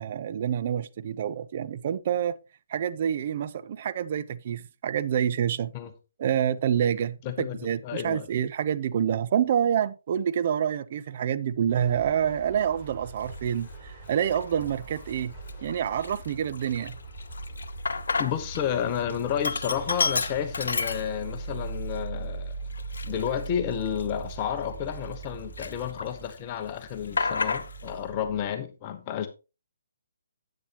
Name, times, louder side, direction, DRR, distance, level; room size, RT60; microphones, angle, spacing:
voice 1, 0.0-2.4 2.7-5.7 6.2-15.3 15.6-17.0, right 9 dB, 45° right, 0.5 m, -27 dB
voice 2, 7.2-8.3 18.2-22.5 23.0-29.3, left 9 dB, 30° left, 1.1 m, -31 dB
sound 1, 11.7-28.5, right 3 dB, 5° left, 6.2 m, -40 dB
Sink (filling or washing), 13.3-13.5 14.2-14.7 15.1-15.2 15.5-18.6 18.9-21.5 21.9-22.0 22.7-25.2 25.6-26.3 26.6-28.0, left 4 dB, 65° left, 0.8 m, -31 dB
10.0 x 8.8 x 3.0 m
figure-of-eight pair, 140°, 0 cm